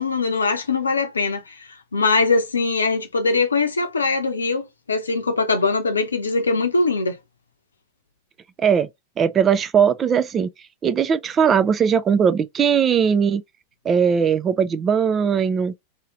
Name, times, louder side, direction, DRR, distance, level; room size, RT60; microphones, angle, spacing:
voice 1, 0.0-7.2, left 3 dB, 75° left, 0.7 m, -22 dB
voice 2, 9.2-10.5 10.8-13.4 13.9-15.7, right 7 dB, 25° right, 0.4 m, -19 dB
2.8 x 2.8 x 2.9 m
figure-of-eight pair, 90°, 0 cm